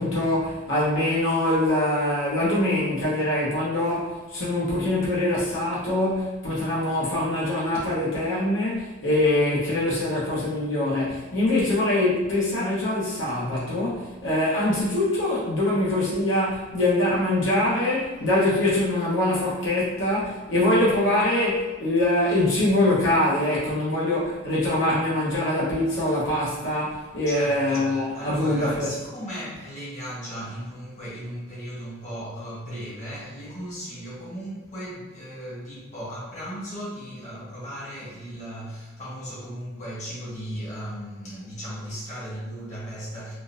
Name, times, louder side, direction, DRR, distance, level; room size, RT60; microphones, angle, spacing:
voice 1, 0.0-28.9, left 1 dB, 70° left, -7 dB, 1.0 m, -23 dB
voice 2, 27.0-43.3, equal, 35° left, -8 dB, 1.1 m, -36 dB
3.6 x 2.5 x 2.5 m, 1.2 s
head